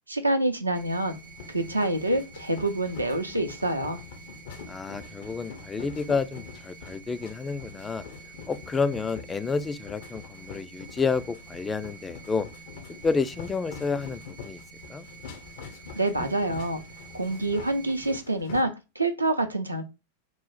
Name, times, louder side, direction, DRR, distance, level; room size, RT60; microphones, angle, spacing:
voice 1, 0.1-1.2 1.5-4.0 16.0-16.8 17.1-19.8, right 1 dB, 85° right, 0.5 m, -27 dB
sound 1, 0.7-18.2, right 4 dB, 90° left, 1.2 m, -48 dB
sound 2, 1.1-18.6, left 6 dB, 55° left, 0.6 m, -45 dB
voice 2, 4.7-8.0 8.5-12.5 13.0-14.6 14.9-15.1 16.2-16.3, left 4 dB, 15° left, 0.3 m, -30 dB
3.0 x 2.1 x 4.0 m
figure-of-eight pair, 90°, 0 cm